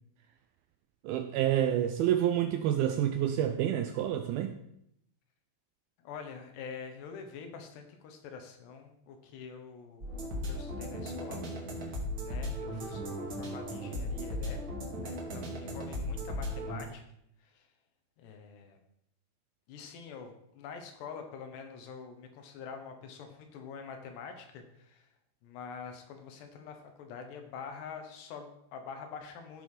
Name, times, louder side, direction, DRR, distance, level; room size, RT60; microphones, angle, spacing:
voice 1, 1.0-4.6, right 11 dB, 80° right, 8 dB, 2.2 m, -28 dB
voice 2, 6.0-10.1 10.4-11.5 11.8-14.6 14.9-17.0 17.4-17.7 18.2-18.8 19.7-25.1 25.4-29.6, left 6 dB, 80° left, 5 dB, 3.5 m, -46 dB
sound 1, 10.0-16.8, equal, 40° right, 2.2 m, -37 dB
14.5 x 6.3 x 5.0 m, 0.76 s
omnidirectional pair, 4.8 m